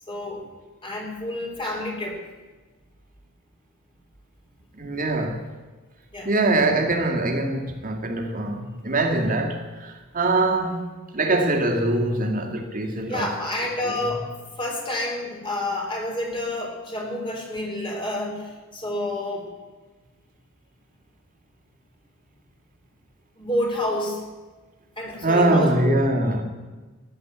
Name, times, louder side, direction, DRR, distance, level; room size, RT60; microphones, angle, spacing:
voice 1, 0.1-0.5 0.8-2.2 6.1-6.3 13.1-14.3 14.6-19.5 23.4-24.2 25.0-26.0, left 1 dB, 25° left, 3.7 m, -29 dB
voice 2, 4.7-5.4 6.2-13.3 13.8-14.0 25.2-26.4, right 2 dB, 40° right, 2.3 m, -23 dB
16.0 x 11.0 x 8.0 m
head